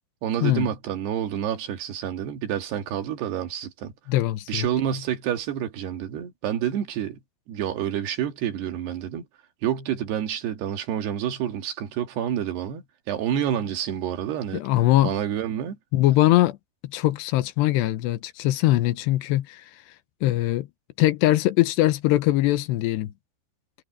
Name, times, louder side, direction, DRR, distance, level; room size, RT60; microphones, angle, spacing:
voice 1, 0.2-3.9 4.5-7.2 7.5-9.3 9.6-14.6 15.0-15.8, right 9 dB, 75° right, 4.0 m, -28 dB
voice 2, 4.1-4.7 14.5-15.1 15.9-16.6 16.8-19.6 20.2-20.7 21.0-23.1, left 16 dB, 85° left, 3.1 m, -21 dB
omnidirectional pair, 4.8 m